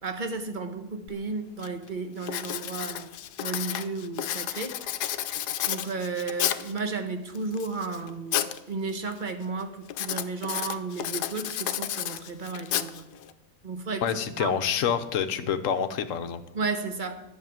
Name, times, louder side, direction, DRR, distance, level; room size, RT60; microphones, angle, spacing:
voice 1, 0.0-3.1 3.4-4.7 5.7-13.1 13.6-14.0 14.4-14.5 16.5-17.2, right 4 dB, 35° right, 7 dB, 1.0 m, -33 dB
Writing, 1.1-1.2 1.6-1.9 2.2-6.8 7.3-8.6 8.9-9.3 9.9-13.3, left 11 dB, 80° left, 1.2 m, -31 dB
voice 2, 14.0-16.4, left 7 dB, 60° left, 10 dB, 1.1 m, -27 dB
11.0 x 6.6 x 8.9 m, 0.91 s
omnidirectional pair, 1.7 m